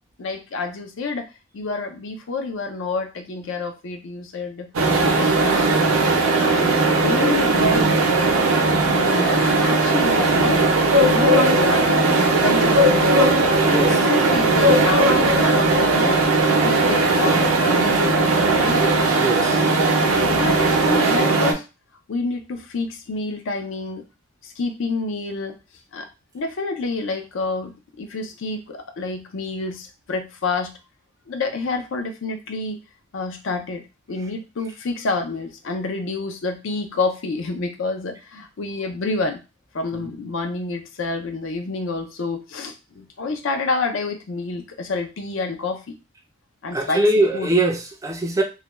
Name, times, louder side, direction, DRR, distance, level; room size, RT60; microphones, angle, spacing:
voice 1, 0.2-1.3 1.5-4.7 5.0-6.0 6.4-8.0 8.9-10.7 11.0-13.2 13.7-16.2 16.5-18.2 18.6-18.9 19.5-19.8 20.1-21.7 22.1-24.1 24.4-25.6 25.9-26.1 26.3-30.7 31.3-32.8 33.1-39.4 39.7-46.0 46.6-47.5, left 3 dB, 60° left, 0.4 m, -28 dB
sound 1, 4.7-21.5, right 2 dB, 75° right, 0.5 m, -18 dB
voice 2, 19.1-19.6 46.7-48.4, right 1 dB, 15° right, 0.3 m, -21 dB
2.3 x 2.1 x 3.0 m
head